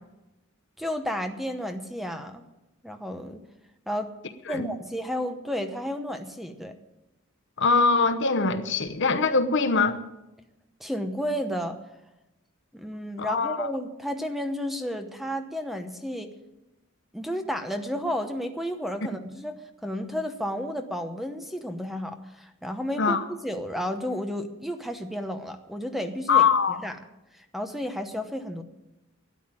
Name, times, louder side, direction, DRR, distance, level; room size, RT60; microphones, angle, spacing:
voice 1, 0.8-2.4 2.8-3.4 3.9-4.1 4.5-6.7 10.8-11.8 12.7-16.3 17.1-27.0 27.4-28.6, equal, ahead, 7 dB, 0.9 m, -32 dB
voice 2, 7.6-10.0 13.2-13.7 22.9-23.2 26.3-26.8, left 4 dB, 55° left, 9 dB, 0.9 m, -22 dB
13.0 x 9.3 x 9.0 m, 0.97 s
head